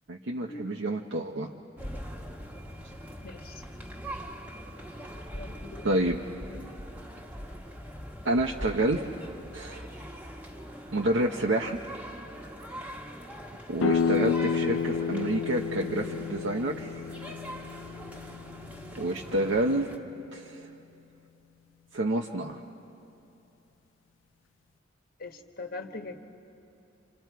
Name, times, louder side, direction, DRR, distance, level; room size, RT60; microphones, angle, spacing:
voice 1, 0.1-1.5 5.8-6.2 8.2-9.1 9.5-9.9 10.9-11.8 13.7-16.9 19.0-20.0 20.3-20.7 21.9-22.6, right 1 dB, 70° right, 1 dB, 0.9 m, -28 dB
sound 1, 1.8-20.0, equal, 10° right, 1.5 m, -42 dB
voice 2, 3.2-3.6 5.3-5.9 25.2-26.2, left 3 dB, 50° left, 4 dB, 1.4 m, -41 dB
sound 2, 13.8-19.4, left 6 dB, 80° left, 0.4 m, -31 dB
28.5 x 27.5 x 4.7 m, 2.8 s
head